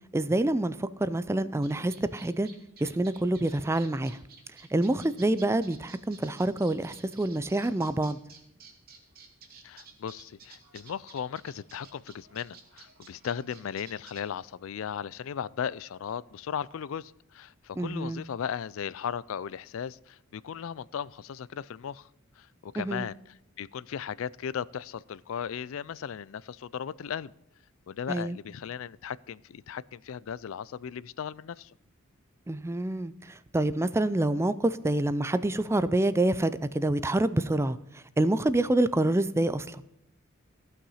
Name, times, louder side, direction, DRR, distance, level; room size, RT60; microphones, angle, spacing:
voice 1, 0.1-2.5 2.8-4.2 4.7-8.2 17.8-18.2 22.8-23.1 28.1-28.4 32.5-39.8, right 1 dB, 10° right, 0.4 m, -27 dB
sound 1, 1.6-14.2, right 5 dB, 45° right, 2.0 m, -52 dB
voice 2, 9.6-22.1 22.4-27.3 27.9-31.7, left 8 dB, 65° left, 0.4 m, -37 dB
15.0 x 5.8 x 5.5 m
head